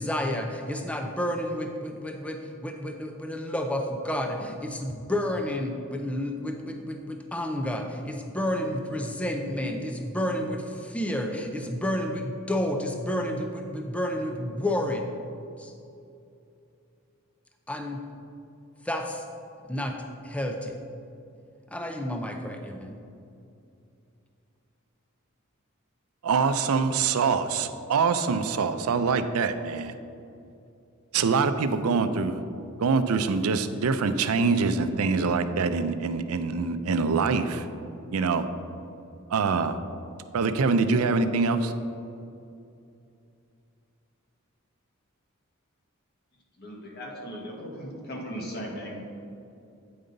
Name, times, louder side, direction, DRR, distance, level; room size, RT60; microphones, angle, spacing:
voice 1, 0.0-15.1 15.6-15.7 17.7-18.0 18.8-19.2 19.7-20.0 20.2-20.8 21.7-23.0, left 1 dB, 5° left, 3 dB, 0.4 m, -30 dB
voice 2, 26.2-29.9 31.1-32.4 32.8-37.7 38.1-38.4 39.3-39.8 40.3-41.7, right 4 dB, 85° right, 10 dB, 0.5 m, -24 dB
voice 3, 46.6-49.0, equal, 50° left, -2 dB, 1.4 m, -37 dB
8.7 x 5.3 x 3.9 m, 2.6 s
head